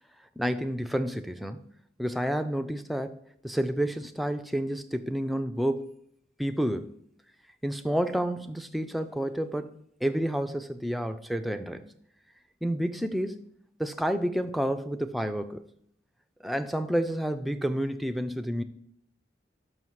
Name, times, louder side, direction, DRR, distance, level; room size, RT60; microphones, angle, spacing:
voice 1, 0.4-1.7 2.0-3.2 3.4-5.9 6.4-6.9 7.6-9.7 10.0-11.9 12.6-13.4 13.8-15.6 16.4-18.6, equal, ahead, 0.3 m, -29 dB
5.6 x 5.6 x 4.6 m
head